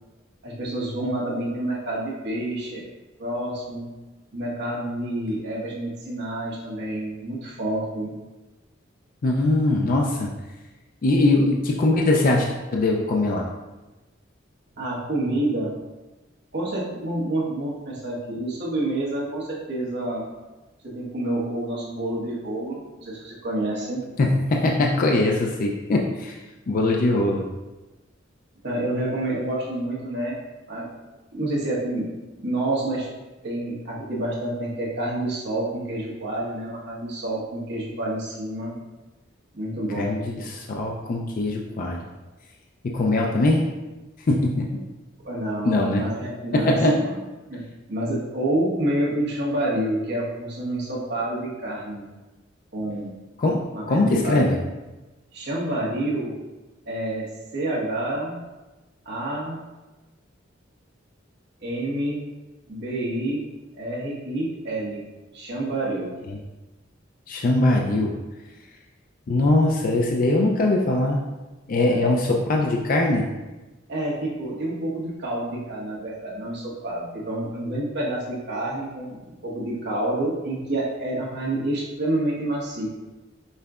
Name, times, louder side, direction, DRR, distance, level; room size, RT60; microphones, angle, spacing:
voice 1, 0.4-2.9 3.2-3.9 4.3-8.1 14.8-15.7 16.5-20.2 20.9-24.0 28.6-30.4 30.7-30.9 31.3-32.0 32.4-33.1 33.4-38.8 39.5-40.2 45.2-47.2 47.5-47.6 47.9-52.1 52.7-53.1 53.7-54.6 55.3-56.3 56.9-58.4 59.0-59.6 61.6-62.2 62.7-63.4 63.8-65.0 65.3-66.1 71.8-72.1 73.9-82.9, right 1 dB, 60° right, -5 dB, 1.3 m, -28 dB
voice 2, 9.2-10.3 11.0-13.5 24.2-26.4 26.7-27.4 40.0-42.0 42.8-43.7 44.3-44.8 45.6-46.0 46.5-47.0 53.4-53.6 53.9-54.6 66.3-66.4 67.3-68.1 69.3-71.2 71.7-73.3, left 2 dB, 45° left, 0 dB, 0.4 m, -21 dB
5.5 x 3.8 x 2.4 m, 1.1 s
head